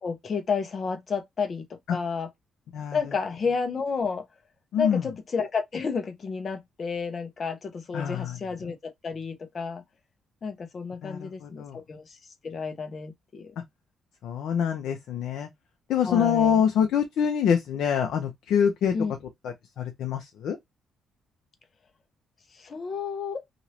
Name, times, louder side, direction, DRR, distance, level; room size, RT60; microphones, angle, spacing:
voice 1, 0.0-2.3 2.9-4.2 4.8-9.8 10.4-12.2 12.4-13.5 16.0-16.6 18.9-19.1 22.5-23.4, left 5 dB, 45° left, 0.8 m, -31 dB
voice 2, 4.7-5.0 7.9-8.4 11.0-11.8 13.6-13.7 14.2-15.5 15.9-18.9 19.4-20.6, left 8 dB, 75° left, 0.6 m, -25 dB
3.1 x 2.6 x 2.8 m
cardioid pair, 90°, 0 cm